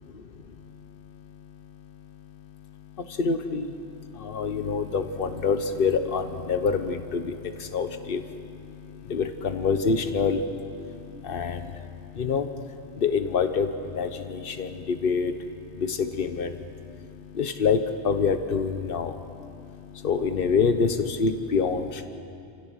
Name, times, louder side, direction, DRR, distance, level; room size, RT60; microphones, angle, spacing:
voice 1, 0.6-22.1, left 5 dB, 50° left, 8 dB, 1.2 m, -28 dB
28.0 x 16.0 x 6.4 m, 2.7 s
omnidirectional pair, 1.2 m